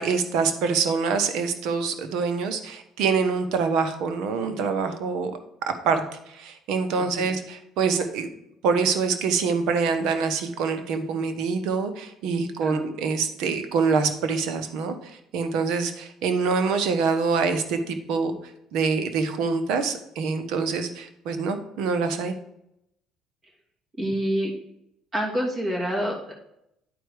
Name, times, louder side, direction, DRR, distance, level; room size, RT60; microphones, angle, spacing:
voice 1, 0.0-5.3 5.7-6.0 6.3-8.3 8.6-18.4 18.7-22.3, right 5 dB, 75° right, 8 dB, 1.1 m, -25 dB
voice 2, 24.0-24.5 25.1-26.3, equal, 30° right, 0 dB, 2.6 m, -27 dB
10.0 x 4.6 x 4.9 m, 0.79 s
supercardioid pair, 90°, 0 cm